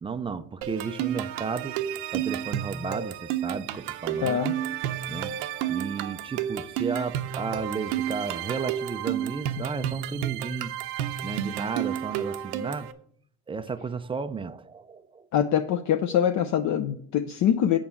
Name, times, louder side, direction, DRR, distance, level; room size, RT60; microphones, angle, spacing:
voice 1, 0.0-1.8 2.1-4.4 5.1-5.3 5.7-10.7 11.2-12.9 13.5-15.3, right 5 dB, 15° right, 12 dB, 0.3 m, -33 dB
sound 1, 0.6-12.9, right 10 dB, 90° right, 0.8 m, -31 dB
voice 2, 4.2-4.5 15.3-17.8, left 9 dB, 50° left, 8 dB, 0.6 m, -24 dB
7.6 x 4.8 x 6.9 m, 0.63 s
cardioid pair, 120°, 39 cm